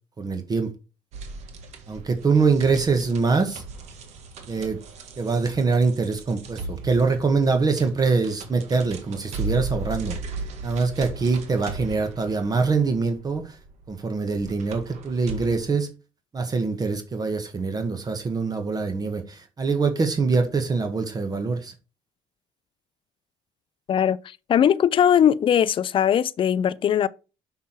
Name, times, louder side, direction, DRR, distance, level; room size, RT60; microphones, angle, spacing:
voice 1, 0.2-0.7 1.9-3.6 4.5-4.8 5.2-10.2 10.6-13.6 13.9-15.9 16.3-21.7, right 4 dB, 35° right, 1.3 m, -24 dB
sound 1, 1.1-15.6, right 3 dB, 70° right, 1.7 m, -37 dB
voice 2, 24.5-27.1, left 9 dB, 50° left, 0.5 m, -20 dB
6.0 x 5.9 x 4.5 m
supercardioid pair, 80°, 12 cm